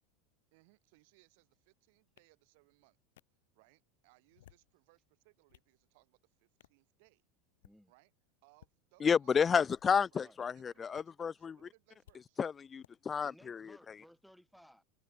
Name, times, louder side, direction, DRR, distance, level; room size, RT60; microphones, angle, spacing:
voice 1, 0.5-3.0 3.5-7.2 7.9-8.1 8.4-9.4 10.1-12.4, right 27 dB, 65° right, 7.9 m, -68 dB
sound 1, 2.2-2.3 3.2-3.3 4.2-4.7 5.2-5.7 6.6-6.8 7.5-7.8 8.5-8.7 9.6-10.1 10.9-11.0 12.0-12.2 12.8-12.9, left 13 dB, 75° left, 2.5 m, -62 dB
voice 2, 9.0-11.6 12.4-13.7, left 6 dB, 25° left, 0.7 m, -31 dB
voice 3, 13.2-14.8, equal, ahead, 6.7 m, -60 dB
hypercardioid pair, 85°, 0 cm